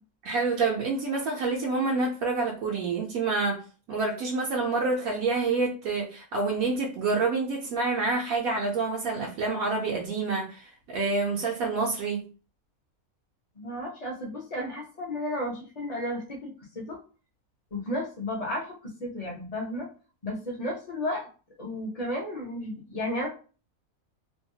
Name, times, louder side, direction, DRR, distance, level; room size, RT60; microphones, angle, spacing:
voice 1, 0.2-3.6 3.9-12.2, right 3 dB, 75° right, -2 dB, 1.0 m, -27 dB
voice 2, 13.6-17.0 17.7-19.9 20.2-21.3 21.6-23.3, left 1 dB, 35° left, 0 dB, 0.7 m, -33 dB
2.7 x 2.2 x 2.7 m, 0.36 s
omnidirectional pair, 1.5 m